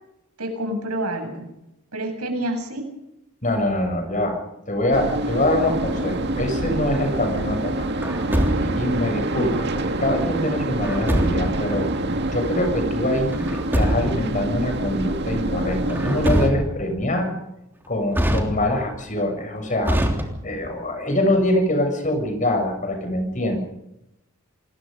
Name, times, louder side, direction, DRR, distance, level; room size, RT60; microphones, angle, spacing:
voice 1, 0.4-1.5 1.9-2.9, right 1 dB, 85° right, 4 dB, 7.9 m, -28 dB
voice 2, 3.4-4.4 4.7-7.9 8.6-12.0 12.3-17.3 17.9-20.0 20.4-23.6, left 1 dB, 35° left, 5 dB, 7.4 m, -24 dB
sound 1, 4.9-16.5, right 1 dB, 50° right, 2.0 m, -26 dB
Truck, 8.0-9.0 10.8-11.7 13.3-14.3 15.9-16.9 18.1-19.0 19.8-20.7, equal, 10° right, 3.2 m, -24 dB
28.0 x 21.0 x 5.4 m, 0.88 s
head